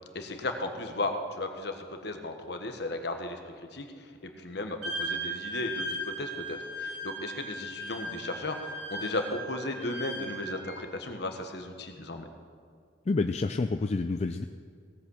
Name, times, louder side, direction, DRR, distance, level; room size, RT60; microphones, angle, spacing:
voice 1, 0.1-3.9 4.2-12.3, left 2 dB, 60° left, 5 dB, 1.3 m, -35 dB
Wind instrument woodwind instrument, 4.8-10.8, right 1 dB, 70° right, 2.6 m, -37 dB
voice 2, 13.1-14.5, left 3 dB, 35° left, 7 dB, 0.3 m, -28 dB
17.5 x 8.3 x 6.4 m, 2.1 s
head